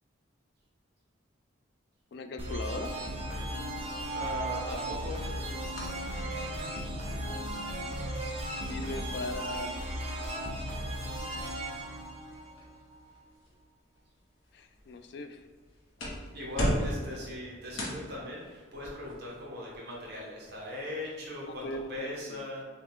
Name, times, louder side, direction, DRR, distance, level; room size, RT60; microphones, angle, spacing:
voice 1, 2.1-3.1 8.6-9.7 14.5-15.4 21.5-22.4, left 2 dB, 55° left, 9 dB, 0.3 m, -39 dB
sound 1, 2.4-13.0, right 1 dB, 30° right, 0.6 m, -36 dB
voice 2, 4.1-5.3 16.3-22.6, left 1 dB, 50° right, -4 dB, 1.1 m, -39 dB
sound 2, 5.3-22.0, equal, 75° left, 1.1 m, -41 dB
6.3 x 2.3 x 3.6 m, 1.5 s
head